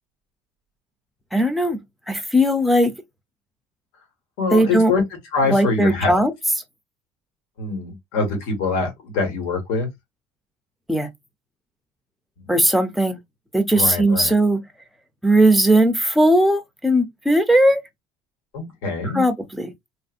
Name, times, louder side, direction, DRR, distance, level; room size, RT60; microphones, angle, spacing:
voice 1, 1.3-1.8 2.1-2.9 4.5-4.9 5.5-6.3 10.9-11.1 12.5-13.2 13.5-14.6 15.2-17.8 19.0-19.7, right 1 dB, ahead, 0.5 m, -18 dB
voice 2, 4.4-5.0 5.3-6.2 7.6-9.9 12.4-12.5 13.7-14.3 18.5-19.2, left 4 dB, 80° left, 1.6 m, -24 dB
3.2 x 2.6 x 2.4 m
cardioid pair, 130°, 16 cm